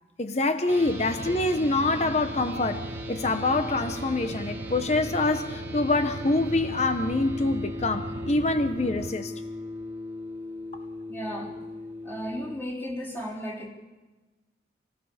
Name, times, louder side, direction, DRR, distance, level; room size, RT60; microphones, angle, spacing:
voice 1, 0.2-9.3, left 2 dB, 35° left, 0.8 m, -25 dB
sound 1, 0.6-12.5, left 1 dB, 15° right, 2.3 m, -38 dB
sound 2, 0.9-9.1, right 3 dB, 75° right, 0.7 m, -39 dB
voice 2, 11.1-11.6 12.0-13.7, equal, 10° left, 3.9 m, -34 dB
26.5 x 17.0 x 7.1 m
head